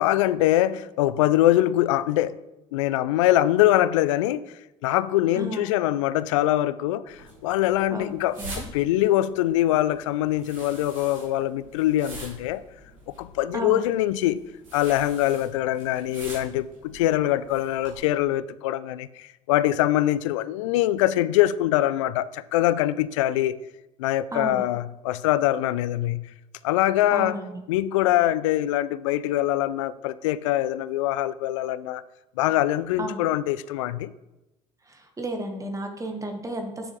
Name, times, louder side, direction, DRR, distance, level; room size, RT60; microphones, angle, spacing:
voice 1, 0.0-2.3 2.7-4.5 4.8-8.4 8.7-12.6 13.2-14.4 14.7-23.6 24.0-26.3 26.6-27.4 27.7-32.0 32.4-34.1, left 14 dB, 75° left, 0.4 m, -23 dB
voice 2, 5.3-5.7 7.9-8.1 8.4-8.6 13.5-13.8 24.3-24.6 27.1-27.4 33.0-33.2 34.9-36.9, right 1 dB, 20° right, 1.4 m, -32 dB
sound 1, 7.1-18.0, right 1 dB, 85° right, 3.1 m, -45 dB
9.0 x 6.9 x 3.2 m
hypercardioid pair, 60°, 16 cm